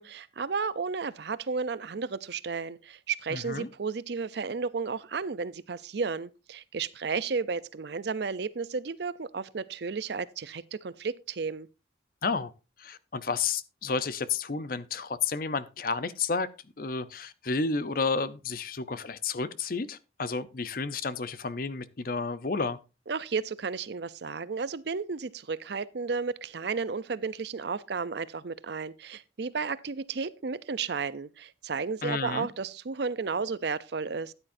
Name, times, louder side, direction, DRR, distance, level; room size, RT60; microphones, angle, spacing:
voice 1, 0.0-11.7 23.1-34.3, right 5 dB, 60° right, 0.5 m, -33 dB
voice 2, 3.3-3.7 12.2-12.5 12.8-16.5 16.8-22.8 32.0-32.5, left 4 dB, 50° left, 0.6 m, -31 dB
13.0 x 9.9 x 2.6 m
head